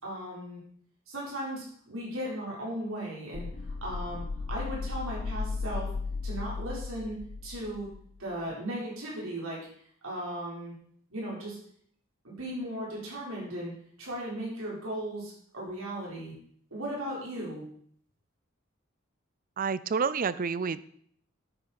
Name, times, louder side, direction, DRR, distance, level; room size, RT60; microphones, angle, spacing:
voice 1, 0.0-0.6 1.1-3.5 3.8-5.9 6.2-7.9 8.2-9.7 10.0-10.7 11.1-11.6 12.2-13.7 14.0-16.3 16.7-17.6, right 1 dB, 80° right, -4 dB, 4.2 m, -36 dB
sound 1, 3.3-8.2, left 4 dB, 35° left, 0.4 m, -35 dB
voice 2, 19.6-20.9, right 5 dB, 45° right, 17 dB, 0.5 m, -29 dB
9.9 x 8.9 x 4.2 m, 0.63 s
head